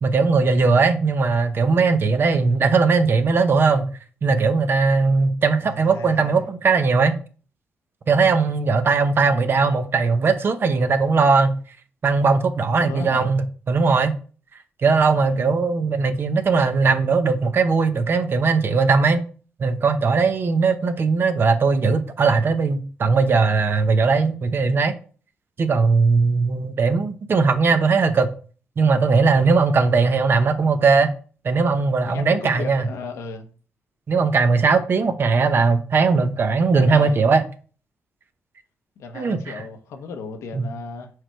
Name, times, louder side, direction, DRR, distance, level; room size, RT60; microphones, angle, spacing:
voice 1, 0.0-3.9 4.2-7.1 8.1-11.6 12.0-13.4 13.7-14.1 14.8-19.2 19.6-24.9 25.6-28.3 28.8-31.1 31.4-32.9 34.1-37.4 39.1-39.6 40.5-40.7, right 4 dB, 50° right, 0.8 m, -19 dB
voice 2, 5.6-6.5 12.8-13.3 15.2-15.5 32.0-33.5 36.8-37.2 39.0-41.1, left 3 dB, 85° left, 1.0 m, -35 dB
4.8 x 4.6 x 4.5 m
cardioid pair, 75°, 5 cm